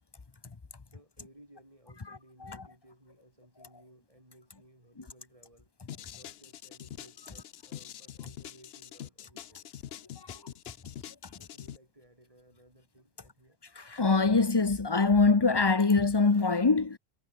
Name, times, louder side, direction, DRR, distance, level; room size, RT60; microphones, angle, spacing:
voice 1, 0.9-5.7 6.1-9.7 10.3-10.9 11.3-13.6, right 1 dB, 30° right, 8.1 m, -59 dB
voice 2, 2.1-2.6 10.2-10.3 13.7-17.0, left 4 dB, 25° left, 0.8 m, -24 dB
sound 1, 5.9-11.8, left 10 dB, 70° left, 0.9 m, -45 dB
omnidirectional pair, 1.1 m